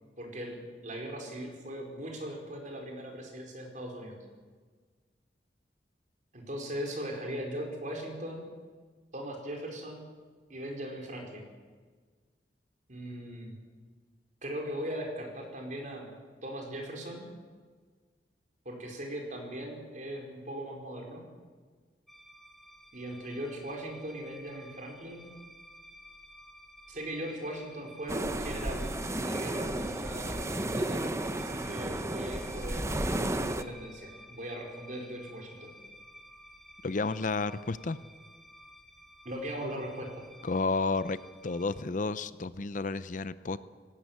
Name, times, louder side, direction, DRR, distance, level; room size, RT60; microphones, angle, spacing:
voice 1, 0.2-4.2 6.3-8.5 9.1-10.0 10.5-11.5 12.9-13.5 14.4-16.1 16.4-17.2 18.6-21.2 22.9-25.3 26.9-28.8 29.1-35.7 39.2-40.2, right 1 dB, 45° right, 1 dB, 4.8 m, -39 dB
sound 1, 22.1-41.8, equal, ahead, 2.2 m, -53 dB
sound 2, 28.1-33.6, right 1 dB, 15° right, 0.9 m, -33 dB
voice 2, 36.8-38.0 40.4-41.2 41.4-43.6, left 3 dB, 45° left, 15 dB, 0.6 m, -31 dB
18.5 x 17.5 x 9.2 m, 1.5 s
head